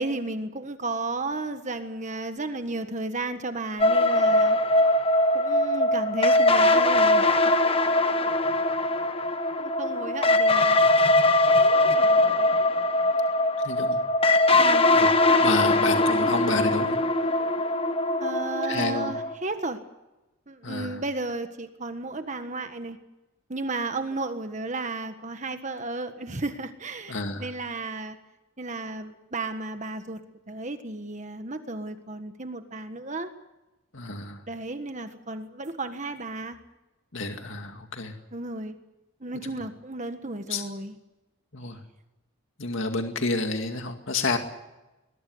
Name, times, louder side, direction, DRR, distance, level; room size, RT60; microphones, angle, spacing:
voice 1, 0.0-4.6 5.3-7.3 9.6-10.8 14.6-14.9 18.2-19.8 20.5-23.0 23.5-28.2 28.6-30.2 30.5-33.3 34.5-36.6 38.3-38.8 39.2-41.0, right 2 dB, 35° right, 8 dB, 1.5 m, -33 dB
sound 1, 3.8-19.3, left 2 dB, 25° left, 1.3 m, -21 dB
voice 2, 13.6-14.0 15.0-15.1 15.4-17.0 18.6-19.1 20.6-21.0 27.1-27.5 33.9-34.4 37.1-38.1 40.5-40.6 41.5-41.8 42.6-44.4, left 3 dB, 65° left, 5 dB, 2.2 m, -29 dB
22.0 x 21.5 x 7.9 m, 1.0 s
head